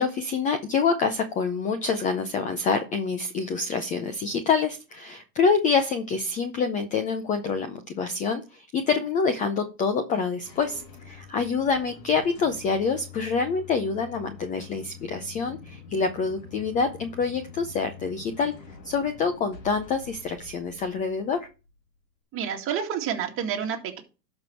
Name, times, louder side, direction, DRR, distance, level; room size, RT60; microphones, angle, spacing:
voice 1, 0.0-18.5 18.8-21.5, left 5 dB, 15° left, 8 dB, 0.6 m, -26 dB
sound 1, 10.1-21.8, left 5 dB, 90° left, 2.8 m, -46 dB
voice 2, 22.3-24.0, right 8 dB, 25° right, 2 dB, 2.1 m, -29 dB
12.0 x 5.4 x 4.4 m, 0.33 s
hypercardioid pair, 135°, 49 cm